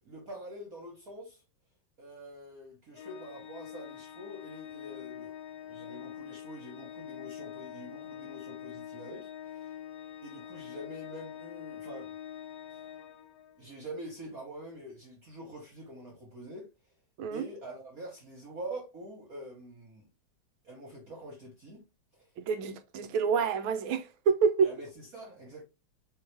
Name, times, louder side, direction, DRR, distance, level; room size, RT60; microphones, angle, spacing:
voice 1, 0.0-1.4 2.0-9.8 10.2-12.1 12.7-12.8 13.6-16.7 17.3-20.1 20.6-21.8 22.1-22.3 24.6-25.6, right 1 dB, 50° right, 1.4 m, -45 dB
Organ, 2.9-13.7, left 10 dB, 65° left, 1.0 m, -44 dB
voice 2, 22.4-24.7, right 6 dB, 75° right, 1.4 m, -27 dB
4.6 x 3.2 x 3.2 m
omnidirectional pair, 2.4 m